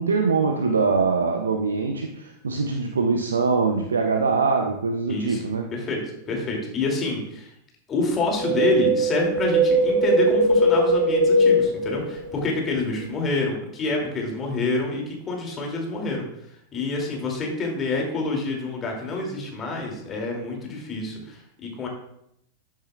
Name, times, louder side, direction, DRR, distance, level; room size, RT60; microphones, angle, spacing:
voice 1, 0.0-5.7, right 4 dB, 70° right, 4 dB, 0.7 m, -23 dB
voice 2, 5.1-5.4 5.7-6.0 6.3-7.5 7.9-16.3 16.7-21.9, left 3 dB, 25° left, 0 dB, 2.7 m, -27 dB
Wind, 8.2-12.5 12.8-12.9, right 1 dB, 45° right, 2.0 m, -20 dB
13.0 x 7.4 x 2.4 m, 0.75 s
figure-of-eight pair, 90°, 0 cm